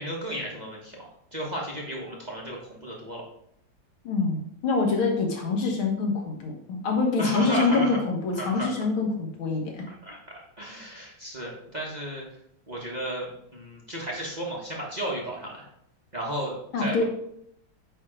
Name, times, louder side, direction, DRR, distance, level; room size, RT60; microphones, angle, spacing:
voice 1, 0.0-3.2 7.2-8.0 8.3-8.7 9.9-10.2 10.6-12.2 12.7-15.7 16.1-17.0, right 1 dB, 25° right, -2 dB, 1.2 m, -34 dB
voice 2, 4.0-9.8 16.7-17.0, left 4 dB, 85° left, 1 dB, 2.3 m, -25 dB
9.3 x 3.5 x 5.0 m, 0.74 s
omnidirectional pair, 2.2 m